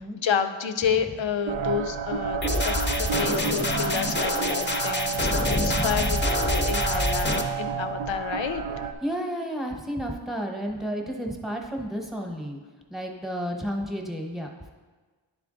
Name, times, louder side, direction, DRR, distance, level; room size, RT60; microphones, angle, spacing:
voice 1, 0.0-8.6, left 7 dB, 70° left, 8 dB, 0.6 m, -30 dB
sound 1, 1.5-8.9, right 7 dB, 75° right, 0.6 m, -31 dB
sound 2, 2.4-7.4, left 2 dB, 25° left, 0.6 m, -26 dB
voice 2, 5.5-5.9 9.0-12.6 12.9-14.8, equal, ahead, 1 dB, 1.0 m, -32 dB
10.5 x 3.5 x 3.8 m, 1.4 s
wide cardioid pair, 40°, 48 cm